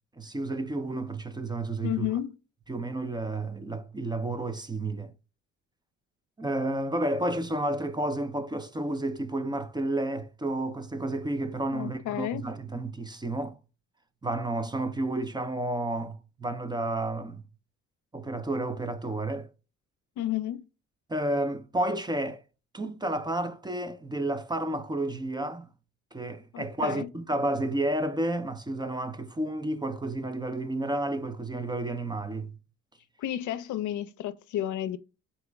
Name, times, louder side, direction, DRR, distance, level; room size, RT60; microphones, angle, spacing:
voice 1, 0.2-2.1 2.7-5.1 6.4-13.6 14.2-17.4 18.1-19.5 21.1-22.4 22.7-25.7 26.1-32.5, right 1 dB, 15° right, 0.5 m, -31 dB
voice 2, 1.8-2.3 11.7-12.5 20.2-20.6 26.5-27.1 33.2-35.0, left 12 dB, 75° left, 0.5 m, -31 dB
4.3 x 2.9 x 3.3 m
cardioid pair, 90°, 30 cm